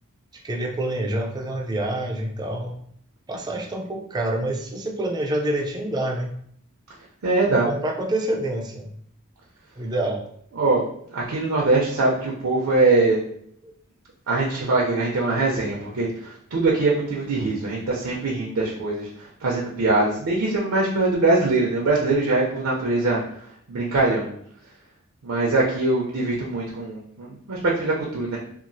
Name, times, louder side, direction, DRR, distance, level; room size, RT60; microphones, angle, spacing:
voice 1, 0.3-2.8 3.3-6.4 7.5-8.9 9.8-10.2 13.6-13.7, right 1 dB, 20° right, 1 dB, 0.3 m, -27 dB
voice 2, 7.2-7.7 10.6-10.8 11.1-13.2 14.3-23.2 23.7-24.3 25.2-28.4, right 3 dB, 70° right, -3 dB, 0.5 m, -22 dB
2.8 x 2.3 x 2.6 m, 0.66 s
head